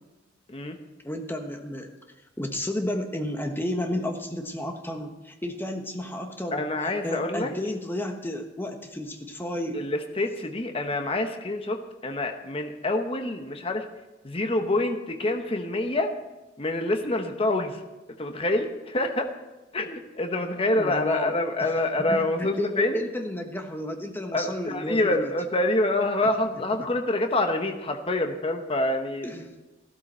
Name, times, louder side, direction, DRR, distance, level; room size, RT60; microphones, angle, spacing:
voice 1, 1.0-1.9 2.4-9.8 20.7-21.7 22.1-25.3 26.2-26.3 29.2-29.5, left 1 dB, 10° left, 4 dB, 1.3 m, -32 dB
voice 2, 6.5-7.5 9.7-13.9 14.2-16.1 16.6-17.8 18.2-19.3 19.7-23.0 24.3-29.3, left 2 dB, 30° left, 5 dB, 1.0 m, -26 dB
14.5 x 12.5 x 4.3 m, 1.1 s
head